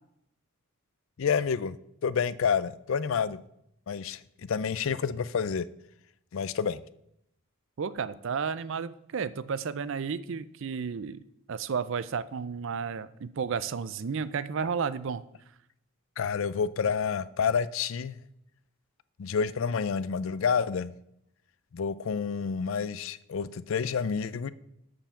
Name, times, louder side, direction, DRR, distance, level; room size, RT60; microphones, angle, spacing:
voice 1, 1.2-1.8 2.0-3.4 3.9-5.7 6.3-6.8 16.2-18.2 19.2-20.9 21.7-24.5, left 6 dB, 60° left, 0.4 m, -29 dB
voice 2, 7.8-11.2 11.5-15.2, right 6 dB, 60° right, 0.4 m, -32 dB
6.9 x 5.7 x 7.1 m
head